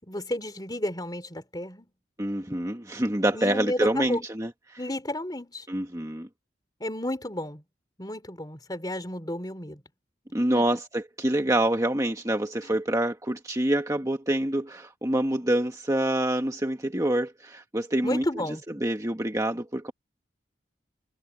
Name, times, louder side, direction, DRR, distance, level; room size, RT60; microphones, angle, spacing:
voice 1, 0.0-1.9 3.3-4.2 4.8-5.7 6.8-7.6 8.0-9.8 10.5-10.8 12.6-12.7 18.0-18.6, left 1 dB, 20° left, 4.0 m, -32 dB
voice 2, 2.2-4.8 5.7-6.3 10.3-18.2 18.8-19.9, right 1 dB, 15° right, 1.4 m, -26 dB
head